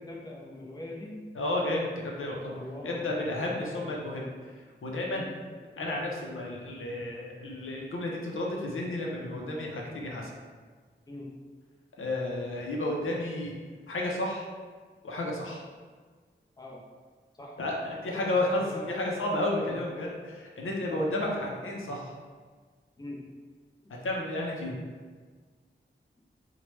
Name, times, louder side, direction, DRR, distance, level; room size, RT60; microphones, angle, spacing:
voice 1, 0.0-1.2 2.6-4.3 5.1-5.3 11.1-11.3 16.6-16.8 17.4-17.6 18.1-18.8 20.9-21.1 23.0-23.2, left 1 dB, 20° left, -3 dB, 0.5 m, -43 dB
voice 2, 1.3-4.5 4.8-5.2 5.8-10.3 12.0-13.6 13.9-14.5 15.0-15.6 17.6-22.1 24.0-24.7, left 1 dB, 80° left, -2 dB, 0.5 m, -32 dB
2.9 x 2.1 x 3.1 m, 1.5 s
wide cardioid pair, 60°, 21 cm